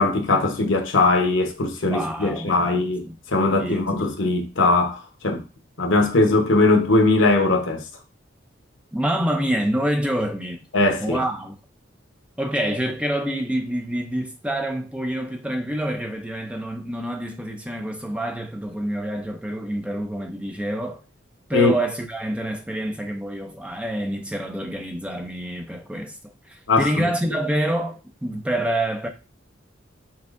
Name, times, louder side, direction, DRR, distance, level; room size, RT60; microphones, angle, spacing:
voice 1, 0.0-3.0 3.3-5.4 5.8-7.8 10.7-11.2 21.5-21.7 26.7-27.1, left 2 dB, 80° left, 0.9 m, -20 dB
voice 2, 1.9-3.2 3.4-4.2 8.9-10.7 11.0-11.6 12.4-21.0 21.5-26.2 26.5-29.1, right 1 dB, 5° right, 0.5 m, -27 dB
5.9 x 3.3 x 2.5 m
head